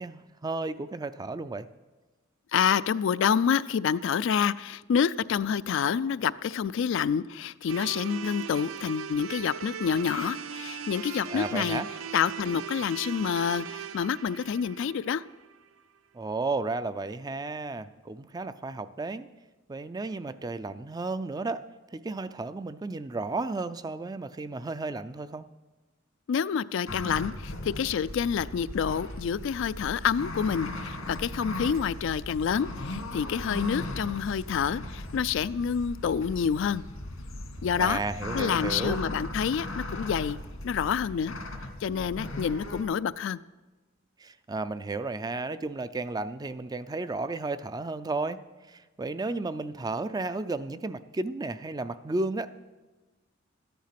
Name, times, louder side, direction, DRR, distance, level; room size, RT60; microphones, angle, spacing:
voice 1, 0.0-1.7 11.3-11.9 16.1-19.3 19.7-21.6 21.9-25.5 37.8-39.0 44.2-48.4 48.7-52.5, right 3 dB, 20° right, 13 dB, 0.4 m, -33 dB
voice 2, 2.5-11.8 12.1-15.2 26.3-36.8 37.6-38.0 38.3-40.4 40.6-41.3 41.8-43.4, left 7 dB, 65° left, 16 dB, 0.3 m, -28 dB
sound 1, 7.7-15.8, right 7 dB, 80° right, 0.6 m, -39 dB
sound 2, 26.9-42.8, left 1 dB, 85° left, 2.0 m, -38 dB
13.5 x 10.5 x 5.9 m, 1.2 s
head